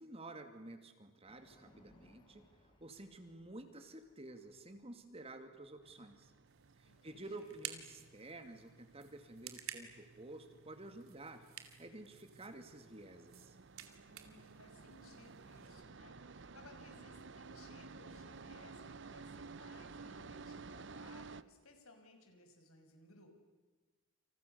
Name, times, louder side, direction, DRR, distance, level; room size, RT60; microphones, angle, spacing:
voice 1, 0.0-2.4 2.8-6.3 6.8-11.4 11.8-13.6, right 2 dB, 30° right, 7 dB, 2.5 m, -51 dB
sound 1, 1.3-11.1, left 1 dB, 25° left, 5.2 m, -70 dB
sound 2, 5.8-21.4, right 4 dB, 55° right, 0.8 m, -54 dB
sound 3, 6.5-15.7, right 10 dB, 75° right, 2.9 m, -53 dB
voice 2, 6.8-7.5 14.1-23.3, left 2 dB, 85° left, 5 dB, 5.9 m, -61 dB
29.0 x 28.5 x 7.0 m, 1.3 s
head